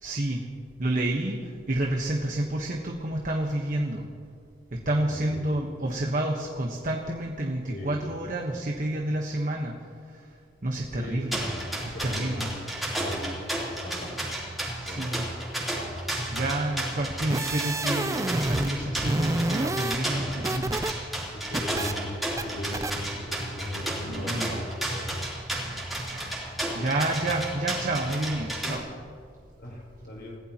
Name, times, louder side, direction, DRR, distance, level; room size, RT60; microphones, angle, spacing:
voice 1, 0.0-0.5 0.8-4.1 4.7-9.7 10.1-10.3 10.6-11.5 11.8-12.5 14.8-15.3 16.3-20.8 24.0-24.6 26.0-26.4 26.7-28.8, right 1 dB, 50° right, 1 dB, 1.3 m, -29 dB
voice 2, 4.8-5.4 7.7-8.1 11.0-11.2 11.9-12.6 13.0-13.3 13.8-14.1 14.9-15.1 18.8-19.0 21.3-25.1 28.6-28.8 29.5-30.4, left 1 dB, 70° left, -3 dB, 5.3 m, -38 dB
sound 1, 11.3-28.8, right 1 dB, ahead, 3.5 m, -33 dB
sound 2, 17.1-18.7 19.0-20.9 21.2-21.9 22.4-22.5 22.7-22.9, right 2 dB, 20° right, 0.5 m, -29 dB
28.0 x 16.0 x 3.0 m, 2.3 s
head